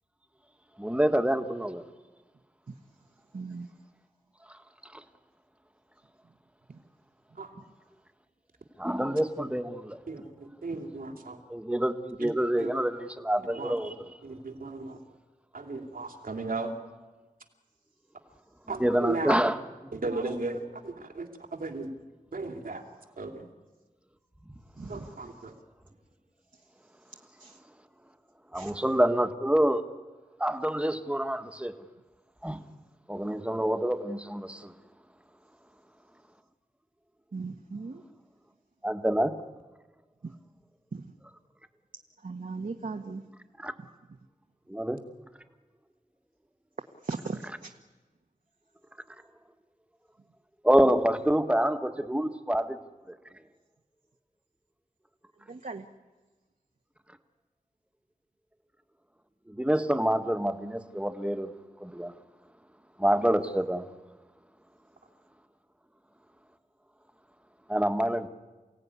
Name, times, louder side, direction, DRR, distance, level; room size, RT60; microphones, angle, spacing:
voice 1, 0.8-1.8 8.8-10.0 11.5-13.9 18.8-19.5 28.5-29.8 30.4-31.7 32.4-32.6 33.1-34.6 38.8-39.3 43.6-43.7 44.7-45.0 50.6-52.8 59.6-61.5 61.8-62.1 63.0-63.8 67.7-68.3, right 1 dB, 10° right, 1.7 m, -26 dB
voice 2, 3.3-3.7 6.7-6.8 24.8-25.1 27.4-27.6 28.5-28.7 37.3-38.0 40.2-40.3 40.9-41.1 42.2-43.3 47.0-47.7 50.8-51.4 55.5-55.8, right 4 dB, 70° right, 1.4 m, -38 dB
voice 3, 10.1-11.4 12.2-12.3 12.6-12.7 13.4-13.9 14.2-15.0 15.5-16.7 18.7-19.4 19.9-21.9 22.3-22.8 23.2-23.5 24.9-25.5, right 3 dB, 85° right, 2.7 m, -36 dB
29.0 x 17.0 x 9.8 m
wide cardioid pair, 50°, 14 cm